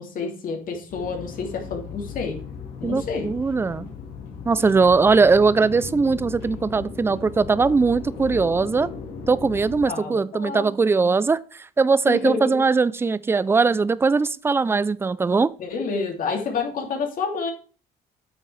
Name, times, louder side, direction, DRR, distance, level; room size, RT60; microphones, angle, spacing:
voice 1, 0.0-2.4 2.8-3.3 9.9-10.7 12.1-12.6 15.6-17.5, left 5 dB, 55° left, 2.5 m, -29 dB
sound 1, 0.9-9.9, left 5 dB, 75° left, 2.4 m, -37 dB
voice 2, 2.8-3.9 4.4-8.9 9.3-15.5, right 4 dB, 15° right, 0.4 m, -20 dB
8.7 x 6.3 x 3.3 m
cardioid pair, 110°, 17 cm